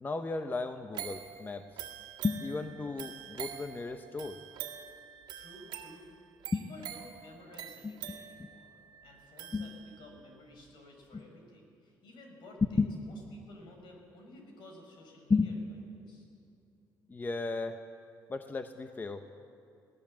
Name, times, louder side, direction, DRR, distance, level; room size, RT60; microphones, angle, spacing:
voice 1, 0.0-1.6 2.2-4.4 6.5-6.6 7.8-8.5 9.5-9.7 11.1-11.2 12.8-12.9 15.3-15.5 17.1-17.8 18.3-19.2, left 4 dB, 25° left, 8 dB, 0.8 m, -33 dB
sound 1, 0.9-10.2 10.7-10.8, right 10 dB, 85° right, 1.7 m, -45 dB
voice 2, 5.3-6.1 6.5-9.7 10.0-15.6 15.9-16.3, left 2 dB, 75° left, 2 dB, 5.1 m, -54 dB
19.5 x 18.0 x 7.5 m, 2.4 s
cardioid pair, 105°, 8 cm